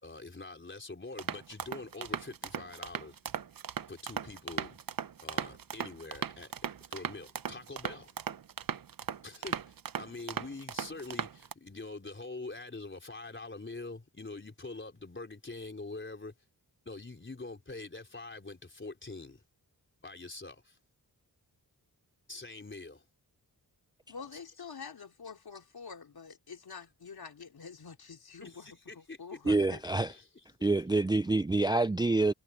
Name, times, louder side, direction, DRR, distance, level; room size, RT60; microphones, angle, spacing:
voice 1, 0.0-3.2 3.9-4.8 5.2-6.5 6.9-8.1 9.2-16.3 16.9-19.4 20.0-20.8 22.3-23.0 24.3-24.4 28.4-29.6 30.1-30.3, left 3 dB, 30° left, 4.2 m, -44 dB
sound 1, 1.2-11.5, right 8 dB, 60° right, 0.8 m, -38 dB
voice 2, 24.1-28.7 28.9-30.1, left 5 dB, 75° left, 3.3 m, -47 dB
voice 3, 29.5-30.1 30.6-32.3, right 2 dB, 10° right, 0.4 m, -27 dB
wide cardioid pair, 95°, 38 cm